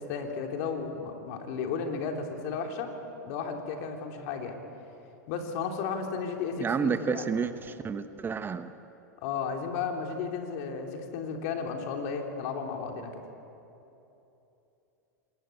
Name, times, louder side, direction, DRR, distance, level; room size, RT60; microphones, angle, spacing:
voice 1, 0.0-2.9 3.2-4.6 5.3-7.4 9.2-13.2, left 5 dB, 55° left, 3 dB, 3.5 m, -34 dB
voice 2, 6.6-8.7, right 6 dB, 20° right, 11 dB, 1.0 m, -30 dB
26.5 x 21.0 x 8.5 m, 3.0 s
hypercardioid pair, 100°, 10 cm